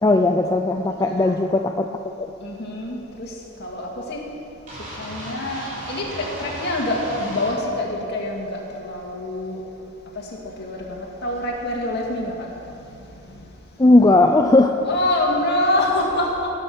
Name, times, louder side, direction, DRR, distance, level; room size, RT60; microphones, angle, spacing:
voice 1, 0.0-1.9 2.2-2.3 13.8-14.8, left 2 dB, 15° left, 4 dB, 0.4 m, -17 dB
voice 2, 1.1-1.4 2.4-3.3 3.6-4.2 5.0-9.6 10.6-12.3 14.8-16.5, left 1 dB, 50° left, -2 dB, 2.3 m, -25 dB
sound 1, 4.7-7.5, right 1 dB, 35° right, 3.3 m, -35 dB
16.5 x 7.7 x 7.0 m, 2.8 s
head